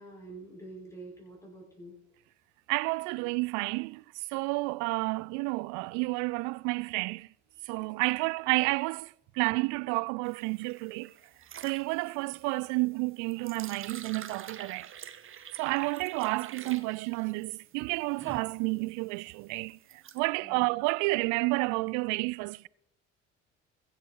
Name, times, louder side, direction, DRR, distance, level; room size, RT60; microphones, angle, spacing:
voice 1, 0.0-2.0 7.5-7.8 20.4-20.6, right 2 dB, 10° left, 6.6 m, -47 dB
voice 2, 2.7-4.0 4.3-7.3 7.7-11.1 11.6-14.9 15.6-19.8 20.1-22.7, right 26 dB, 55° right, 0.4 m, -30 dB
sound 1, 10.2-20.2, right 9 dB, 35° right, 1.1 m, -47 dB
22.0 x 7.6 x 4.7 m
figure-of-eight pair, 55°, 35 cm